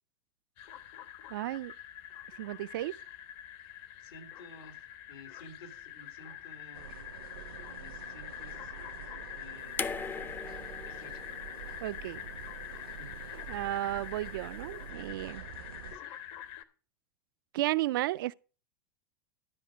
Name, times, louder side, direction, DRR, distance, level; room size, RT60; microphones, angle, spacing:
sound 1, 0.6-16.6, left 10 dB, 50° left, 1.1 m, -45 dB
voice 1, 1.3-1.7 2.4-2.9 11.8-12.2 13.5-15.4 17.5-18.3, right 16 dB, 70° right, 0.4 m, -33 dB
voice 2, 4.0-4.8 5.1-7.1 7.8-10.4 10.8-11.2 13.0-13.6 15.9-16.1, left 2 dB, 80° left, 2.5 m, -54 dB
sound 2, 6.7-16.0, right 10 dB, 85° right, 0.9 m, -47 dB
sound 3, 9.8-12.9 14.1-14.2, left 5 dB, 15° left, 0.5 m, -40 dB
12.0 x 5.0 x 6.1 m
hypercardioid pair, 100°, 12 cm